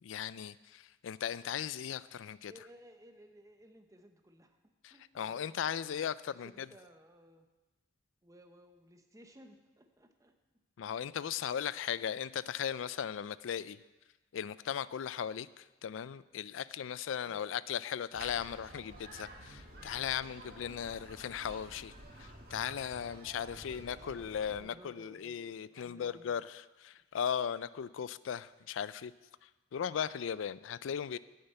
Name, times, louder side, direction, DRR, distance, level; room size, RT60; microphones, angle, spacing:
voice 1, 0.0-2.5 4.8-6.7 10.8-13.8 14.3-21.9 22.2-26.4 26.8-29.1 29.7-31.2, left 8 dB, 85° left, 17 dB, 0.4 m, -37 dB
voice 2, 2.4-4.6 4.9-6.0 6.3-7.5 8.2-10.4 11.1-11.4 11.7-12.2 17.2-17.5 23.0-24.1 24.6-26.4, equal, 15° right, 6 dB, 0.8 m, -58 dB
sound 1, 18.1-24.6, right 1 dB, 50° right, 2.2 m, -51 dB
10.0 x 6.6 x 8.0 m, 1.2 s
head